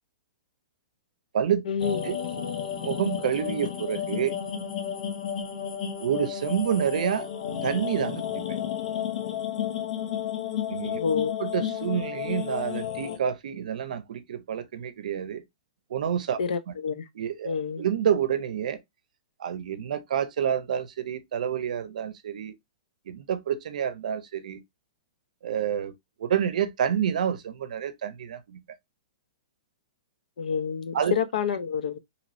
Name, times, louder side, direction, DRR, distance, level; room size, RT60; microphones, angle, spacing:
voice 1, 1.7-2.0 11.0-11.3 16.4-17.0 17.5-17.8 30.4-32.0, left 6 dB, 80° left, 0.6 m, -28 dB
sound 1, 1.8-13.2, left 9 dB, 60° left, 0.9 m, -32 dB
voice 2, 2.8-4.4 6.0-7.3 7.6-8.6 10.7-11.0 11.4-15.4 15.9-16.4 16.7-16.8 17.1-18.8 19.4-22.5 23.1-24.6 25.4-25.9 26.2-28.6 30.9-31.1, right 8 dB, 70° right, 0.6 m, -28 dB
3.0 x 2.9 x 2.5 m
hypercardioid pair, 165°, 4 cm